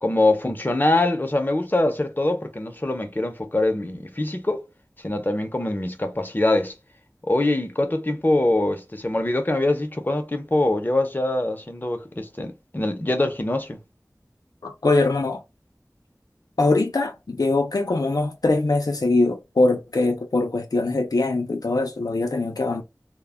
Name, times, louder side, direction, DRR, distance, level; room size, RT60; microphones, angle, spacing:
voice 1, 0.0-4.6 5.0-6.7 7.3-13.8, left 2 dB, 30° left, 0.6 m, -23 dB
voice 2, 14.6-15.4 16.6-22.8, left 2 dB, 85° left, 0.4 m, -22 dB
2.1 x 2.1 x 3.4 m
wide cardioid pair, 40°, 6 cm